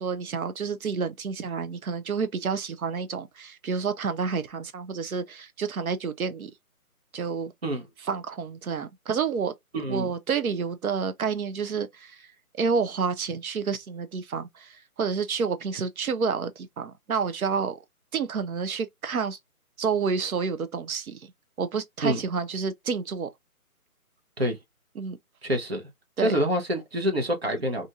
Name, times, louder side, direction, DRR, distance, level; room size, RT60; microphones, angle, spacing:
voice 1, 0.0-6.5 7.1-7.5 8.1-9.5 9.9-12.2 12.6-17.8 18.1-19.4 19.8-21.2 21.6-23.3 25.0-25.2 26.2-26.3, right 5 dB, 70° right, 0.7 m, -29 dB
voice 2, 9.7-10.1 22.0-22.2 24.4-24.6 25.4-25.8 26.2-27.9, equal, 45° right, 0.9 m, -26 dB
2.9 x 2.6 x 2.3 m
hypercardioid pair, 175°, 45 cm